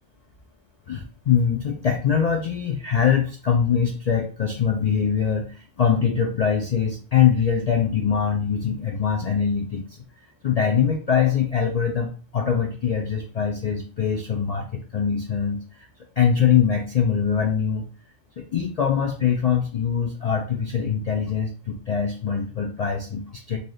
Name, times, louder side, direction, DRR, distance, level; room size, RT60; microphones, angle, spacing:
voice 1, 0.9-9.8 10.4-15.6 16.2-17.9 18.4-23.6, left 7 dB, 60° left, 2 dB, 0.4 m, -23 dB
3.1 x 2.7 x 3.8 m, 0.39 s
omnidirectional pair, 1.2 m